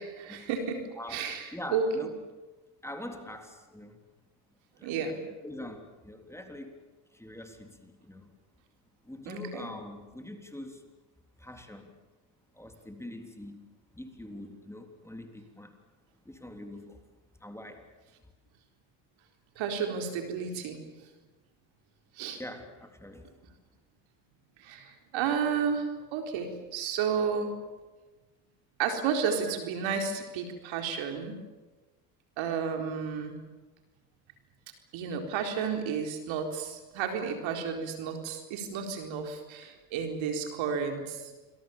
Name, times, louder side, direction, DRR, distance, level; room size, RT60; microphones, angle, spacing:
voice 1, 0.0-0.8 1.1-1.8 4.8-5.2 9.3-9.7 19.6-20.8 22.2-22.4 24.6-27.5 28.8-31.3 32.4-33.4 34.9-41.3, right 6 dB, 65° right, 4 dB, 4.3 m, -32 dB
voice 2, 1.0-2.1 2.8-4.0 4.8-4.9 5.4-6.8 7.1-8.3 9.0-10.8 11.4-11.9 12.5-13.6 14.0-15.7 16.3-17.0 17.4-17.9 22.4-23.3, left 1 dB, 5° left, 4 dB, 3.6 m, -43 dB
28.5 x 22.5 x 7.3 m, 1.2 s
hypercardioid pair, 70°, 49 cm